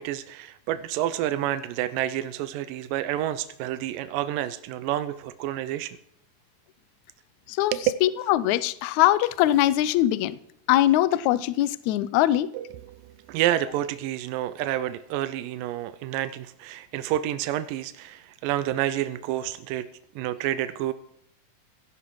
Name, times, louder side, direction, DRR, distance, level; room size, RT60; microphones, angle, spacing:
voice 1, 0.0-6.0 7.7-7.9 12.5-19.9 20.2-20.9, right 13 dB, 80° right, 11 dB, 2.3 m, -29 dB
voice 2, 8.0-10.4 10.7-12.5, left 14 dB, 80° left, 16 dB, 1.7 m, -22 dB
16.5 x 14.0 x 4.8 m, 0.70 s
omnidirectional pair, 4.0 m